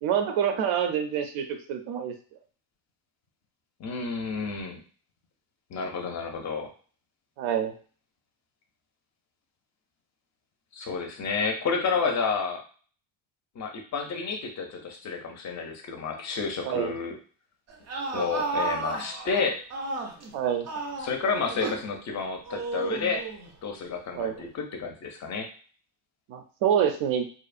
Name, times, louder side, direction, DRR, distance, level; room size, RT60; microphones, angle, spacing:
voice 1, 0.0-2.1 7.4-7.7 16.6-16.9 20.3-20.7 24.1-24.4 26.3-27.3, right 9 dB, 90° right, 6 dB, 0.6 m, -26 dB
voice 2, 3.8-4.8 5.7-6.7 10.7-12.6 13.6-17.2 18.1-19.6 21.0-23.2 23.6-25.5, left 5 dB, 40° left, 3 dB, 0.4 m, -30 dB
sound 1, 17.7-20.3 20.7-21.9 22.5-23.5, right 3 dB, 40° right, 0.4 m, -32 dB
2.8 x 2.0 x 2.4 m, 0.41 s
cardioid pair, 160°, 47 cm